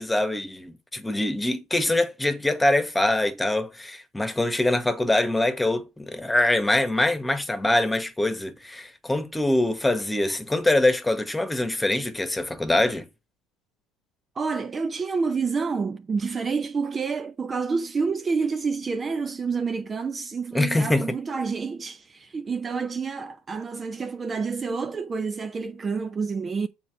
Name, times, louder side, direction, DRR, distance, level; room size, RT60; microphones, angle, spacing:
voice 1, 0.0-13.0 20.5-21.1, left 1 dB, 10° left, 1.4 m, -24 dB
voice 2, 14.3-26.7, right 5 dB, 30° right, 0.7 m, -28 dB
7.2 x 3.8 x 6.2 m
hypercardioid pair, 75°, 0 cm